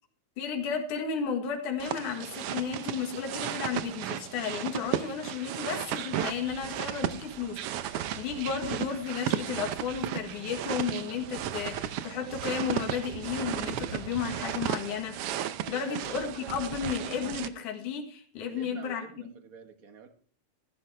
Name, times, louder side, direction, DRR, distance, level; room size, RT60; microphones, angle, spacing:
voice 1, 0.4-15.2 15.7-19.1, left 6 dB, 80° left, 3 dB, 3.2 m, -33 dB
sound 1, 1.8-17.5, right 11 dB, 75° right, 1.3 m, -34 dB
voice 2, 18.5-20.1, right 5 dB, 40° right, 6 dB, 1.4 m, -48 dB
14.5 x 12.0 x 3.3 m, 0.42 s
omnidirectional pair, 3.5 m